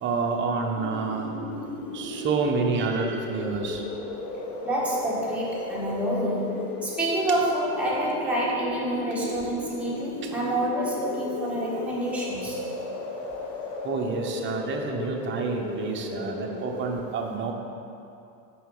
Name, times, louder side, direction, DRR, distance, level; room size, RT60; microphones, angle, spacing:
voice 1, 0.0-1.3 1.9-3.8 10.2-10.3 13.8-17.5, right 4 dB, 25° right, 1 dB, 0.7 m, -28 dB
sound 1, 0.8-17.0, left 2 dB, 40° left, 1.1 m, -35 dB
voice 2, 4.6-12.6, right 1 dB, 5° right, -6 dB, 1.4 m, -28 dB
5.7 x 3.9 x 5.5 m, 2.6 s
hypercardioid pair, 100°, 47 cm